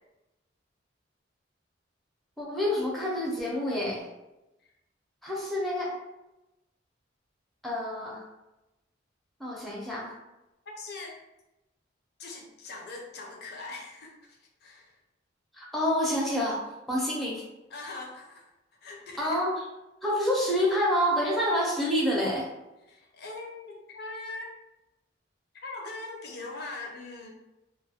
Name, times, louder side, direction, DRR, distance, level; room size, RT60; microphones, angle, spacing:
voice 1, 2.4-4.0 5.2-5.9 7.6-8.2 9.4-10.1 15.5-16.6 16.9-17.4 19.2-19.5 20.0-22.5, equal, ahead, -4 dB, 0.5 m, -27 dB
voice 2, 10.8-11.2 12.2-14.9 17.7-18.5 18.8-19.4 22.9-24.5 25.6-27.3, left 3 dB, 55° left, 0 dB, 0.4 m, -41 dB
2.2 x 2.0 x 2.7 m, 0.97 s
head